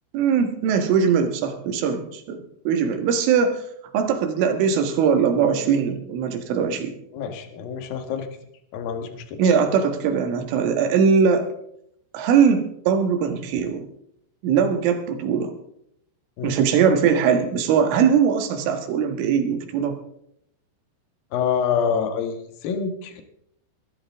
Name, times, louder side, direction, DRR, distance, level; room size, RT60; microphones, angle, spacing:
voice 1, 0.1-3.6 3.9-6.9 9.4-11.5 12.1-13.9 14.4-15.6 16.4-20.0, right 6 dB, 75° right, 6 dB, 4.0 m, -21 dB
voice 2, 7.1-8.3 8.7-9.4 16.4-16.6 21.3-23.2, left 7 dB, 60° left, 6 dB, 2.8 m, -26 dB
21.0 x 13.0 x 3.6 m, 0.73 s
omnidirectional pair, 5.8 m